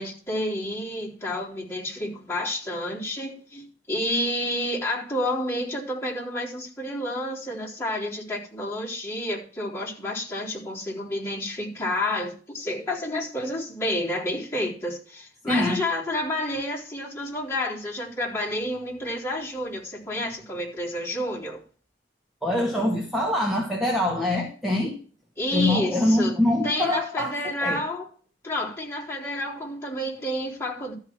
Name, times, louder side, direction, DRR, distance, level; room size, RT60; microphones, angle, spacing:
voice 1, 0.0-21.6 25.4-26.4 26.6-28.1 28.4-30.9, left 1 dB, 15° left, 3.9 m, -30 dB
voice 2, 15.5-15.8 22.4-24.9 25.5-27.8, left 1 dB, ahead, 1.8 m, -24 dB
13.0 x 4.8 x 7.4 m
head